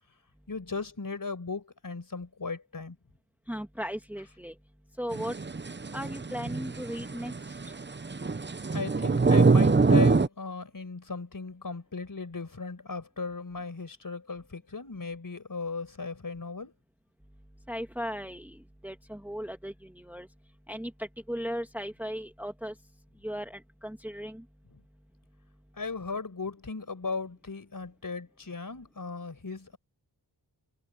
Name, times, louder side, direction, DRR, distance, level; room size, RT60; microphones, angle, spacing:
voice 1, 0.5-3.0 8.7-16.7 24.7-24.8 25.7-29.8, left 4 dB, 50° left, 5.3 m, -36 dB
voice 2, 3.5-4.6 4.9-5.4 5.9-7.8 17.7-20.3 20.7-22.8 23.2-24.5, equal, 5° right, 1.9 m, -37 dB
sound 1, 5.1-10.3, right 4 dB, 25° right, 0.8 m, -24 dB
wide cardioid pair, 75°, 43 cm